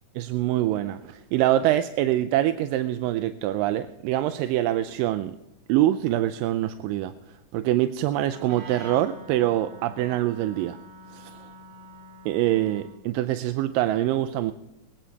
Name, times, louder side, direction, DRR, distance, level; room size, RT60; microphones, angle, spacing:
voice 1, 0.2-5.4 5.7-7.1 7.5-10.8 11.1-11.3 12.3-14.5, right 13 dB, 90° right, 10 dB, 2.3 m, -24 dB
Wind instrument woodwind instrument, 8.2-13.1, equal, 45° right, 2.0 m, -46 dB
22.0 x 8.9 x 4.6 m, 0.95 s
omnidirectional pair, 3.9 m